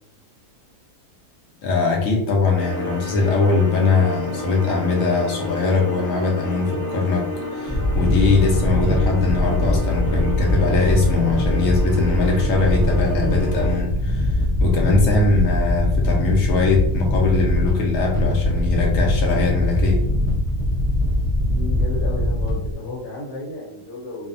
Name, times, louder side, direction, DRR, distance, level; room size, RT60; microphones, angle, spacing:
voice 1, 1.6-20.0, left 4 dB, 70° left, 0 dB, 0.8 m, -21 dB
sound 1, 2.5-13.7, left 1 dB, 45° right, 0.7 m, -31 dB
sound 2, 7.7-22.7, left 1 dB, 5° left, 0.6 m, -21 dB
voice 2, 21.5-24.3, left 2 dB, 85° left, -3 dB, 1.2 m, -32 dB
2.7 x 2.0 x 2.6 m, 0.78 s
omnidirectional pair, 1.7 m